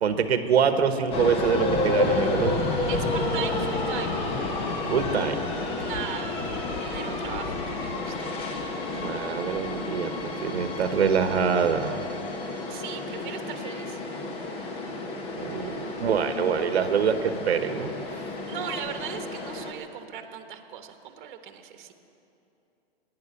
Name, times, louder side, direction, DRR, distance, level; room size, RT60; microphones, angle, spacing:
voice 1, 0.0-2.5 4.9-5.4 8.9-12.0 15.3-17.9, right 7 dB, 80° right, 9 dB, 1.2 m, -25 dB
sound 1, 1.1-19.7, left 2 dB, 15° left, 0.9 m, -30 dB
voice 2, 2.9-4.2 5.8-6.4 6.8-8.4 12.7-14.0 18.5-21.9, right 9 dB, 50° right, 7 dB, 1.2 m, -38 dB
15.5 x 10.0 x 8.3 m, 2.9 s
hypercardioid pair, 155°, 32 cm